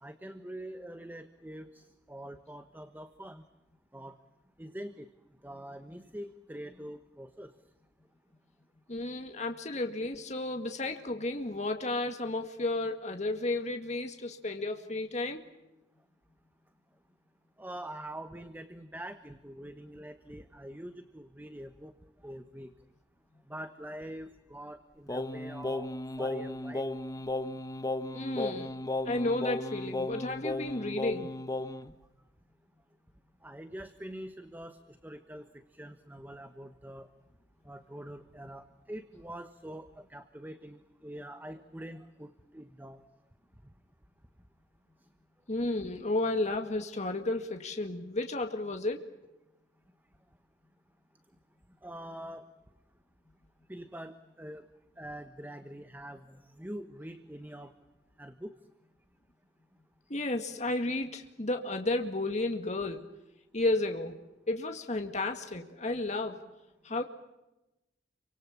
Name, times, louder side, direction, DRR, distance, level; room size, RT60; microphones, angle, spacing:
voice 1, 0.0-3.4 3.9-4.1 4.6-5.1 5.4-7.5 17.6-21.9 22.2-22.7 23.5-25.9 26.2-26.9 33.4-37.1 37.6-43.0 51.8-52.5 53.7-54.7 55.0-57.7 58.2-58.5, right 1 dB, 10° right, 9 dB, 1.2 m, -44 dB
voice 2, 8.9-15.4 28.1-28.8 29.1-31.3 45.5-49.1 60.1-63.1 63.5-64.2 64.5-66.4 66.8-67.0, left 2 dB, 40° left, 5 dB, 2.1 m, -32 dB
Singing, 25.1-31.9, left 2 dB, 20° left, 1.1 m, -35 dB
28.5 x 25.0 x 7.3 m, 0.97 s
head